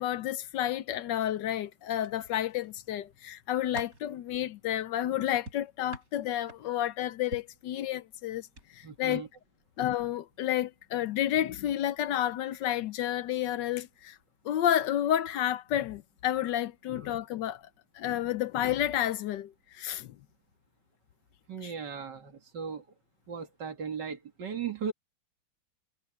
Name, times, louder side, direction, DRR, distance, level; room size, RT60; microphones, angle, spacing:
voice 1, 0.0-8.5 8.7-9.2 9.8-14.2 14.4-17.6 17.9-20.2, left 11 dB, 70° left, 1.3 m, -30 dB
sound 1, 1.9-2.7 3.2-4.1 5.5-6.9 7.3-7.6 8.5-8.7 9.0-9.2, right 2 dB, 45° right, 6.2 m, -46 dB
voice 2, 8.8-9.3 17.0-17.1 21.5-22.9 23.3-24.9, right 6 dB, 65° right, 2.6 m, -37 dB
omnidirectional pair, 2.1 m